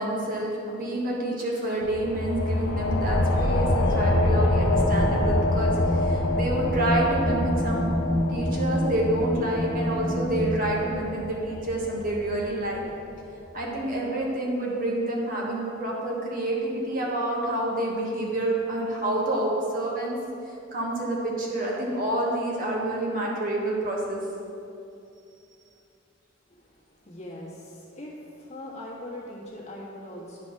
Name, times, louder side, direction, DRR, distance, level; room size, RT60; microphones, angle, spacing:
voice 1, 0.0-5.7 6.0-7.9 8.3-12.8 13.5-20.2 20.7-24.2, right 1 dB, 45° right, -2 dB, 1.3 m, -28 dB
sound 1, 1.8-13.0, left 1 dB, 85° left, 0.6 m, -26 dB
sound 2, 4.8-10.7, equal, 5° right, 0.4 m, -29 dB
voice 2, 26.5-30.4, left 1 dB, 35° left, -4 dB, 1.5 m, -41 dB
9.7 x 4.2 x 5.8 m, 2.6 s
head